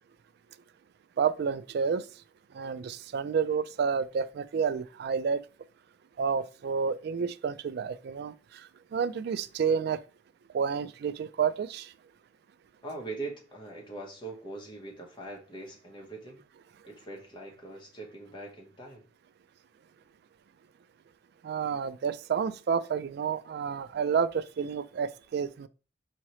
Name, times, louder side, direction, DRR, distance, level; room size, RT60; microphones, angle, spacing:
voice 1, 1.2-2.0 2.5-5.4 6.2-10.0 10.5-11.9 21.4-25.7, right 6 dB, 55° right, 0.3 m, -30 dB
voice 2, 12.8-16.4 16.9-19.1, right 2 dB, 25° left, 1.0 m, -42 dB
4.7 x 2.8 x 3.0 m
head